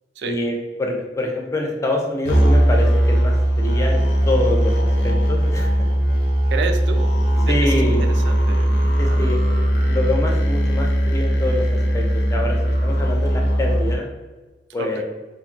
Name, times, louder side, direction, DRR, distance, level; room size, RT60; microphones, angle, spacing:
voice 1, 0.2-0.5 0.8-3.3 3.6-4.7 5.0-5.7 7.5-8.0 9.0-9.4 9.9-11.6 11.9-12.6 12.8-14.1 14.7-15.0, left 1 dB, 15° left, 1 dB, 0.4 m, -25 dB
sound 1, 2.3-14.0, equal, 80° left, 0.5 m, -19 dB
voice 2, 6.5-7.2 7.5-9.4 14.8-15.0, right 5 dB, 75° right, 6 dB, 0.4 m, -31 dB
2.9 x 2.6 x 2.6 m, 1.2 s
head